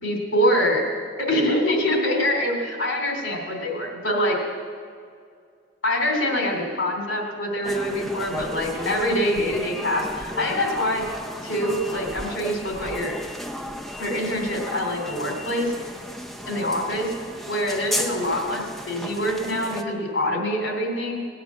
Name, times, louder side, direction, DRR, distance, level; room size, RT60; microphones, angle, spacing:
voice 1, 0.0-0.9 1.2-4.4 5.8-11.1 11.4-13.2 14.0-15.7 16.5-17.1 17.5-21.2, equal, 85° left, 1 dB, 3.2 m, -25 dB
sound 1, 7.6-19.8, equal, ahead, 0.6 m, -34 dB
18.5 x 9.4 x 7.3 m, 2.2 s
head